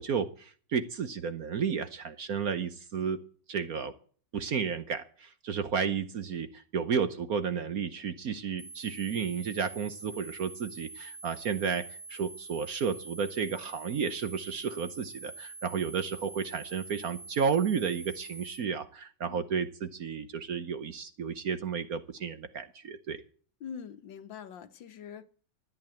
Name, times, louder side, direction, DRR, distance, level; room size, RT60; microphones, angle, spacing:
voice 1, 0.0-3.2 3.5-3.9 4.3-23.2, right 6 dB, 55° right, 1.2 m, -32 dB
sound 1, 8.6-18.6, right 3 dB, 35° right, 5.2 m, -46 dB
voice 2, 23.6-25.3, left 7 dB, 70° left, 1.8 m, -44 dB
13.5 x 8.7 x 8.9 m
omnidirectional pair, 2.1 m